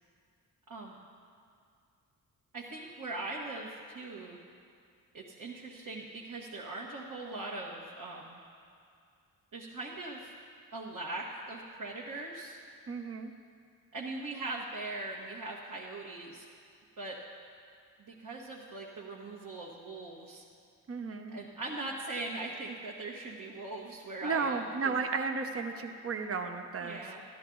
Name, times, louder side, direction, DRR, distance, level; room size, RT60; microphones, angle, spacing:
voice 1, 0.7-1.0 2.5-4.4 5.1-8.4 9.5-10.3 10.7-12.6 13.9-16.4 17.0-17.2 18.0-20.4 21.3-25.0 26.8-27.2, right 2 dB, 50° right, -4 dB, 1.5 m, -40 dB
voice 2, 12.9-13.3 20.9-21.4 24.2-27.0, right 4 dB, 35° right, 5 dB, 0.9 m, -33 dB
12.5 x 11.5 x 3.9 m, 2.4 s
cardioid pair, 65°, 38 cm